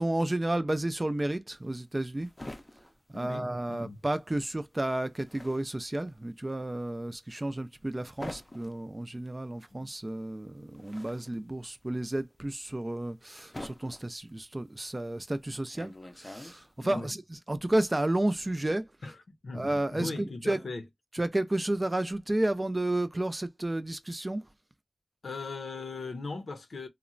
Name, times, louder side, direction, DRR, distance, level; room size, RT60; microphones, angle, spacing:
voice 1, 0.0-2.3 3.1-18.9 19.5-20.6 21.1-24.4, right 1 dB, 25° right, 0.3 m, -31 dB
sound 1, 1.6-4.1 4.3-17.0, left 1 dB, 25° left, 0.5 m, -47 dB
voice 2, 3.1-4.0 9.7-9.8 16.8-17.1 19.0-20.8 25.2-26.9, left 3 dB, 85° left, 0.6 m, -39 dB
2.9 x 2.1 x 2.4 m
wide cardioid pair, 70°, 0 cm